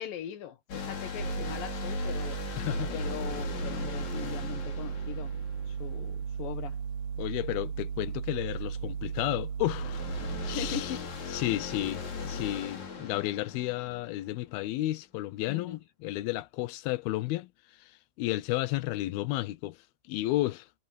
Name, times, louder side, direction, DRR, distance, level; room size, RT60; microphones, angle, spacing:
voice 1, 0.0-2.4 2.9-5.3 5.7-6.8 10.4-11.5 15.5-15.8, left 10 dB, 70° left, 3.1 m, -40 dB
sound 1, 0.7-6.2 9.7-14.4, left 5 dB, 50° left, 4.5 m, -39 dB
sound 2, 1.2-10.8, right 7 dB, 65° right, 3.2 m, -36 dB
voice 2, 2.6-2.9 7.2-10.0 10.4-11.0 11.3-17.5 18.2-19.8 20.1-20.7, left 17 dB, 90° left, 2.7 m, -32 dB
omnidirectional pair, 4.3 m